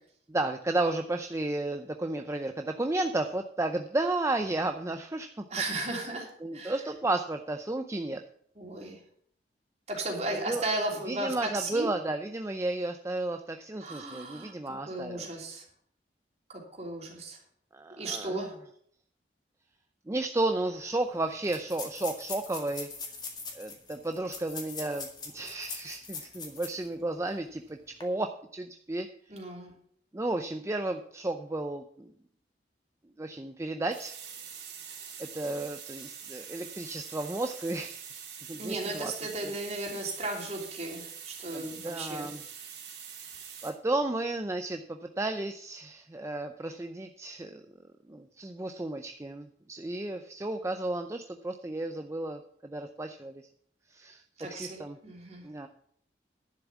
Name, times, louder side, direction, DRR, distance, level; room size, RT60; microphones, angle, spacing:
voice 1, 0.3-5.3 6.4-8.2 10.5-10.6 11.1-15.3 17.7-18.5 20.1-22.9 23.5-29.1 30.1-32.1 33.2-34.1 35.2-38.1 38.5-39.1 39.4-39.5 41.5-42.4 43.6-47.6 48.1-53.4 53.9-54.2 54.5-55.0 55.4-55.7, right 2 dB, 15° right, 6 dB, 0.5 m, -33 dB
voice 2, 5.5-6.3 6.5-6.7 8.6-9.0 9.9-11.9 13.8-14.5 14.9-15.6 16.5-17.4 17.9-18.5 29.3-29.7 38.6-42.3 54.4-55.4, right 2 dB, 40° right, 0 dB, 3.1 m, -35 dB
sound 1, 20.4-20.5 20.7-20.8 21.4-26.9 27.3-27.4 27.9-28.0, left 4 dB, 25° left, 2.0 m, -41 dB
sound 2, 33.9-43.7, right 7 dB, 85° right, 3.5 m, -44 dB
11.0 x 7.1 x 7.1 m, 0.66 s
head